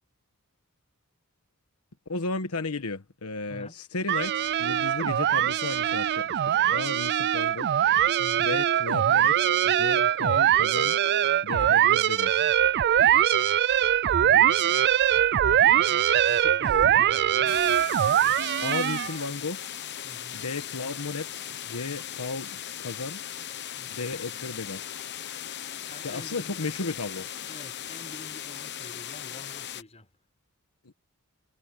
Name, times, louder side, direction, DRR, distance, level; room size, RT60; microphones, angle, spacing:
voice 1, 2.1-7.7 8.4-11.0 11.4-12.5 18.6-19.6 20.3-23.2 23.9-24.9 26.0-27.3 30.8-30.9, left 3 dB, 85° left, 1.3 m, -34 dB
voice 2, 3.5-3.8 8.2-8.6 10.0-10.1 11.5-11.8 14.2-17.6 20.0-20.4 21.8-22.0 23.8-24.2 25.8-26.6 27.5-30.1, left 1 dB, 30° left, 5.1 m, -47 dB
sound 1, 4.1-19.2, right 10 dB, 50° right, 0.3 m, -22 dB
sound 2, 17.5-29.8, left 10 dB, 50° left, 1.0 m, -38 dB
head